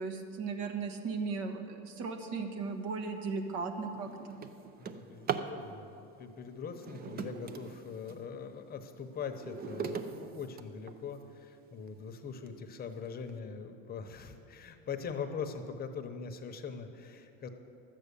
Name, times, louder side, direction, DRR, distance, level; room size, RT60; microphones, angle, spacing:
voice 1, 0.0-4.4, right 4 dB, 65° right, 5 dB, 1.4 m, -37 dB
Drawer open or close, 2.9-3.1 3.6-5.6 6.7-8.3 8.8-11.2 11.9-12.0 12.5-12.6 12.9-13.3, right 6 dB, 30° right, 0.6 m, -40 dB
voice 2, 4.8-17.5, left 6 dB, 30° left, 6 dB, 0.9 m, -42 dB
12.0 x 8.3 x 6.9 m, 2.7 s
supercardioid pair, 125°, 30 cm